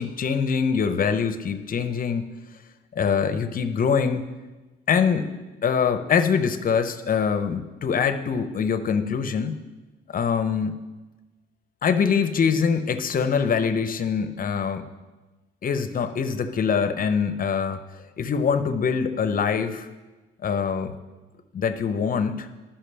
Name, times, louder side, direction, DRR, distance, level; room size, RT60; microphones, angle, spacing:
voice 1, 0.0-2.3 2.9-4.3 4.9-5.3 5.6-9.6 10.1-10.8 11.8-14.9 15.6-17.8 18.2-19.9 20.4-20.9 21.5-22.5, left 6 dB, 45° left, 10 dB, 0.7 m, -24 dB
13.5 x 5.7 x 3.4 m, 1.2 s
cardioid pair, 90°, 20 cm